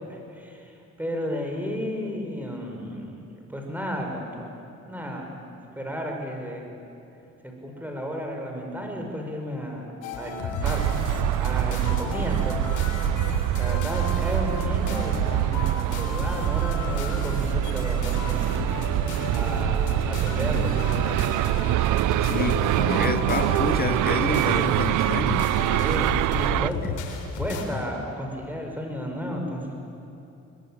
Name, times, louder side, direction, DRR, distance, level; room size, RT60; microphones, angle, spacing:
voice 1, 0.3-3.2 3.5-4.5 4.9-5.3 5.7-6.7 7.4-11.0 11.4-12.9 13.6-18.5 19.3-20.8 25.7-26.8 27.4-29.7, equal, 5° right, 5.9 m, -33 dB
sound 1, 10.0-27.6, left 4 dB, 80° left, 3.6 m, -33 dB
sound 2, 10.6-26.7, right 16 dB, 80° right, 0.5 m, -24 dB
sound 3, 11.1-11.6 13.0-13.1 14.3-14.7 17.2-17.7 18.0-18.1 19.9-20.0 20.3-20.9 22.9-23.1, left 2 dB, 55° left, 3.4 m, -50 dB
voice 2, 22.2-25.5 26.8-26.9 27.7-27.8, left 6 dB, 30° left, 0.6 m, -29 dB
22.5 x 21.0 x 9.3 m
cardioid pair, 90°, 30 cm